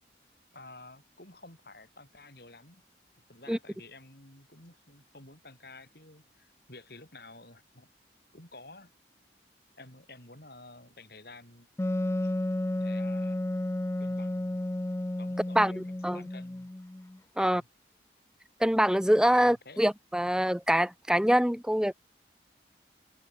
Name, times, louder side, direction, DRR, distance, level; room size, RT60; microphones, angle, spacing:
voice 1, 0.5-2.8 3.3-7.9 8.3-8.9 9.8-11.7 12.2-12.3 12.7-13.7 14.0-14.6 15.2-16.7 17.4-17.7 19.3-19.9, left 2 dB, 55° left, 7.3 m, -51 dB
Wind instrument woodwind instrument, 11.8-17.2, left 1 dB, 15° left, 0.4 m, -32 dB
voice 2, 15.5-16.2 17.4-17.6 18.6-21.9, equal, 5° right, 1.0 m, -25 dB
head